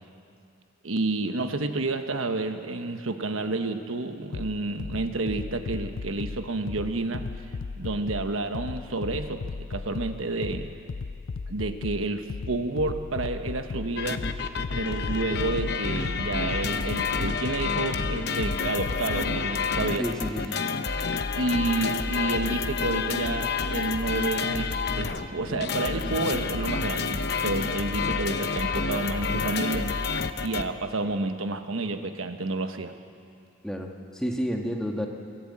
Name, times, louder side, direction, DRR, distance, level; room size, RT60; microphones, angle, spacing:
voice 1, 0.8-7.3 7.8-10.7 11.5-14.3 14.8-20.1 21.3-32.9, right 2 dB, 80° right, 7 dB, 1.2 m, -30 dB
sound 1, 4.3-19.3, left 4 dB, 70° left, 0.5 m, -36 dB
sound 2, 14.0-30.6, left 4 dB, 50° left, 0.9 m, -29 dB
voice 2, 20.0-20.6 33.6-35.1, equal, 5° left, 1 dB, 1.5 m, -30 dB
23.5 x 15.0 x 8.7 m, 2.4 s
head